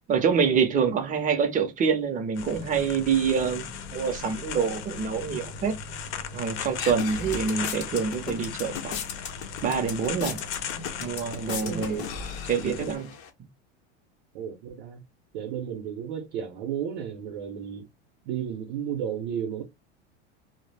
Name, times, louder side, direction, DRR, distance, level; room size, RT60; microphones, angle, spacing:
voice 1, 0.1-5.7 6.3-9.0 9.6-10.4 11.0-12.0 12.5-13.1, right 6 dB, 25° right, 0.6 m, -26 dB
sound 1, 2.3-13.0, left 6 dB, 85° left, 0.7 m, -37 dB
sound 2, 6.4-13.3, left 6 dB, 45° left, 0.7 m, -37 dB
voice 2, 11.6-12.1 14.3-15.0 15.3-17.9 18.2-19.6, right 9 dB, 65° right, 0.7 m, -33 dB
2.1 x 2.0 x 3.2 m
supercardioid pair, 130°, 33 cm